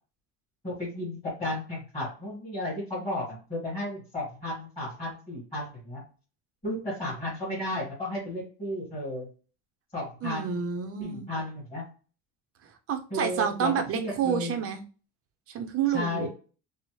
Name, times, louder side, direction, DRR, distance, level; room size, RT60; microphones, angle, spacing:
voice 1, 0.6-6.0 6.6-9.3 9.9-10.6 11.0-11.8 13.1-14.6 15.9-16.3, left 1 dB, 15° left, -10 dB, 1.8 m, -33 dB
voice 2, 10.2-11.3 12.6-14.8 15.5-16.3, right 8 dB, 40° right, 7 dB, 0.5 m, -29 dB
4.1 x 2.0 x 3.0 m, 0.36 s
cardioid pair, 140°, 36 cm